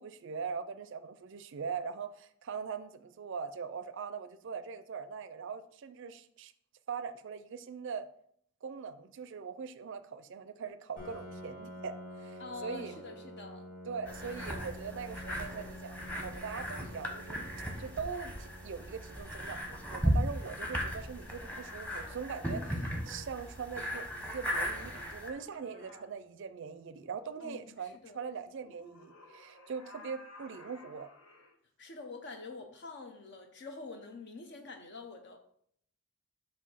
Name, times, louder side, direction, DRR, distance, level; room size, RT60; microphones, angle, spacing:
voice 1, 0.0-6.5 6.9-8.1 8.6-13.0 13.9-17.4 17.8-31.1, right 6 dB, 65° right, 12 dB, 0.4 m, -41 dB
Piano, 11.0-26.4, equal, 40° left, 2.2 m, -50 dB
voice 2, 12.4-13.7 27.4-27.7 28.0-28.2 31.8-35.4, left 3 dB, 55° left, 5 dB, 0.7 m, -46 dB
sound 1, 14.1-25.3, equal, 10° left, 1.0 m, -37 dB
sound 2, 21.1-23.5 24.5-26.0 28.6-31.5, left 2 dB, 80° left, 1.3 m, -55 dB
6.9 x 2.6 x 5.5 m, 0.66 s
head